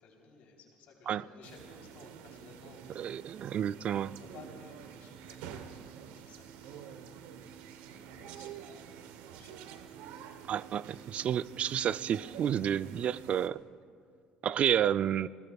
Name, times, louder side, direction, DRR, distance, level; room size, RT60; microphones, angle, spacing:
voice 1, 0.0-3.1 3.4-7.6 7.9-9.7, left 4 dB, 70° left, 3.5 m, -57 dB
sound 1, 1.4-13.5, right 8 dB, 85° right, 0.9 m, -48 dB
voice 2, 3.0-4.1 10.5-13.6 14.4-15.3, right 9 dB, 50° right, 0.3 m, -30 dB
28.5 x 20.5 x 2.3 m
cardioid pair, 100°, 3 cm